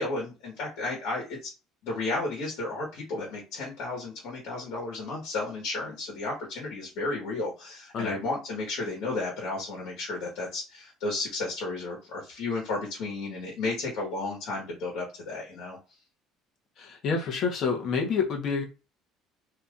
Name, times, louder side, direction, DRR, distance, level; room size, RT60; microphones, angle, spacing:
voice 1, 0.0-1.4 1.8-15.8, left 2 dB, 70° left, -4 dB, 1.4 m, -33 dB
voice 2, 16.8-18.6, left 5 dB, 45° left, 2 dB, 1.0 m, -28 dB
2.8 x 2.5 x 3.5 m, 0.30 s
cardioid pair, 150°, 0 cm